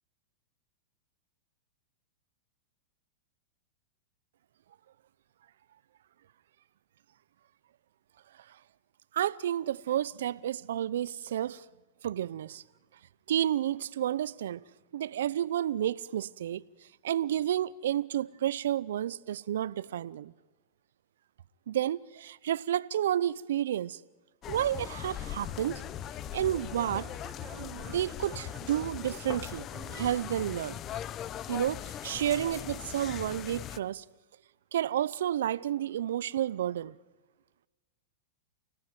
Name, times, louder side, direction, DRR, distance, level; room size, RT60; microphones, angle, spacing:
voice 1, 9.1-11.6 12.0-12.6 13.3-14.6 14.9-16.6 17.0-20.3 21.7-24.0 24.5-25.8 26.3-27.1 27.5-29.7 29.9-30.7 31.5-34.0 34.7-36.9, right 11 dB, 75° right, 0.7 m, -31 dB
sound 1, 24.4-33.8, left 11 dB, 35° left, 0.9 m, -40 dB
Singing / Plucked string instrument, 25.2-31.1, right 11 dB, 35° right, 1.3 m, -53 dB
29.5 x 16.5 x 9.4 m
hypercardioid pair, 115°, 0 cm